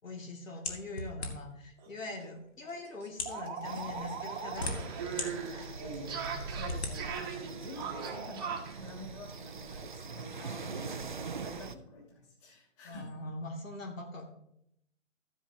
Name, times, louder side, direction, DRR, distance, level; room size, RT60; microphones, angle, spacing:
voice 1, 0.0-6.4 12.8-14.4, left 2 dB, 75° left, 2 dB, 2.5 m, -43 dB
sound 1, 0.6-1.6 2.4-2.5 3.1-3.4 4.2-5.3 5.8-5.9 6.6-6.9, left 3 dB, 55° left, 2.3 m, -37 dB
sound 2, 1.8-1.9 2.2-2.3 2.6-8.8, right 6 dB, 15° right, 1.1 m, -39 dB
sound 3, 3.6-11.8, right 4 dB, 40° right, 0.5 m, -42 dB
voice 2, 6.5-13.1, left 2 dB, 25° left, -4 dB, 2.8 m, -49 dB
14.0 x 9.8 x 2.8 m, 0.75 s
hypercardioid pair, 165°, 39 cm